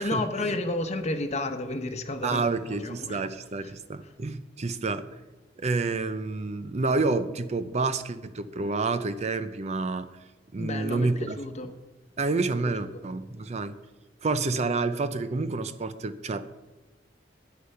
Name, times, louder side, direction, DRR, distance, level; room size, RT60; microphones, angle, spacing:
voice 1, 0.0-3.2 3.6-3.7 4.0-4.1 10.6-11.7 12.3-13.0, left 2 dB, 35° left, 7 dB, 1.0 m, -32 dB
voice 2, 2.2-5.2 5.6-10.1 10.5-11.4 12.2-13.7 14.2-16.4, right 3 dB, 35° right, 11 dB, 0.5 m, -29 dB
9.9 x 9.6 x 5.6 m, 1.2 s
head